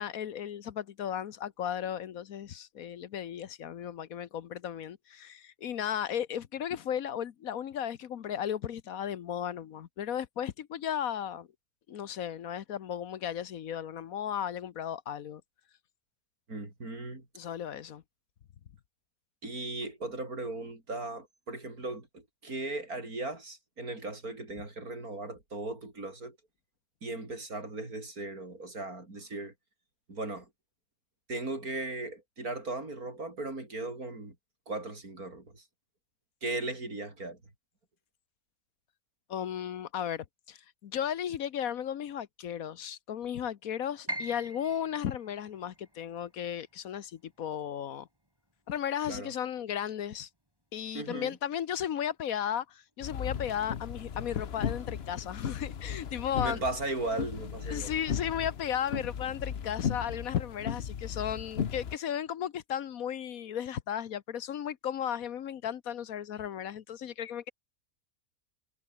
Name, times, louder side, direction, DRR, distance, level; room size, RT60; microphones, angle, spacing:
voice 1, 0.0-11.5 11.9-15.4 17.3-18.0 39.3-48.1 48.7-50.3 50.7-56.6 57.7-67.5, left 9 dB, 70° left, 1.4 m, -35 dB
voice 2, 16.5-17.3 19.4-26.4 27.0-29.5 30.1-30.5 31.3-34.3 34.7-35.6 36.4-37.4 49.1-49.3 50.9-51.4 56.4-57.9, right 2 dB, 75° right, 6.1 m, -37 dB
Piano, 44.1-50.0 50.3-51.5 51.9-52.0 52.7-53.0, equal, 15° right, 7.9 m, -45 dB
sound 1, 53.0-62.0, left 7 dB, 50° left, 1.1 m, -36 dB
omnidirectional pair, 1.6 m